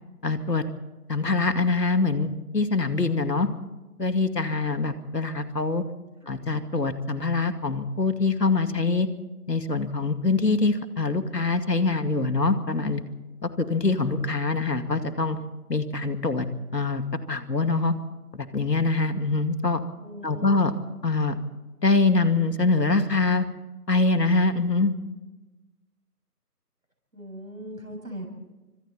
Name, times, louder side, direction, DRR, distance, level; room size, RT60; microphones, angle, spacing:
voice 1, 0.2-0.6 1.1-3.5 4.0-5.8 6.3-9.1 9.5-13.0 13.4-15.4 15.7-16.4 16.7-17.0 17.3-17.9 18.3-19.8 20.2-20.7 21.0-21.4 21.8-23.5 23.9-24.9, left 3 dB, 80° left, 8 dB, 2.4 m, -24 dB
voice 2, 6.2-6.5 20.0-20.9 27.1-28.3, right 1 dB, 55° right, 2 dB, 7.5 m, -40 dB
28.5 x 25.0 x 4.3 m, 1.1 s
figure-of-eight pair, 180°, 48 cm